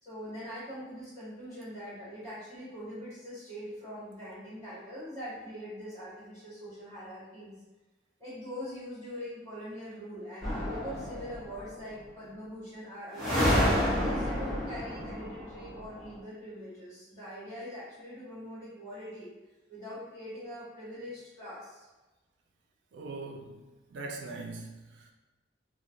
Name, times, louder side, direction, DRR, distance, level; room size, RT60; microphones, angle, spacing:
voice 1, 0.0-7.6 8.2-19.3 19.7-21.8, equal, 15° left, -12 dB, 1.4 m, -43 dB
sound 1, 10.4-11.6 13.1-16.0, equal, ahead, 1.0 m, -29 dB
voice 2, 22.9-23.6 23.9-25.1, right 3 dB, 85° right, 1 dB, 0.4 m, -41 dB
3.0 x 2.1 x 2.5 m, 1.1 s
head